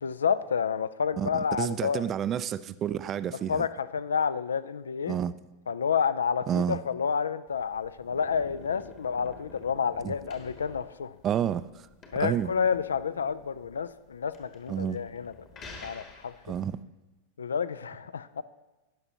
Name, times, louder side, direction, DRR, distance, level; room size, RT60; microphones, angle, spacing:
voice 1, 0.0-2.0 3.5-5.2 5.7-11.2 12.1-15.3 15.8-16.3 17.4-18.4, left 6 dB, 70° left, 16 dB, 0.3 m, -29 dB
voice 2, 1.2-3.7 5.1-5.3 6.5-6.8 10.0-10.1 11.2-11.6 12.2-12.5 14.7-15.0 16.4-16.8, right 9 dB, 30° right, 15 dB, 0.3 m, -29 dB
sound 1, 7.5-16.7, left 3 dB, 30° left, 1.3 m, -50 dB
17.0 x 5.8 x 2.8 m, 1.1 s
figure-of-eight pair, 90°, 0 cm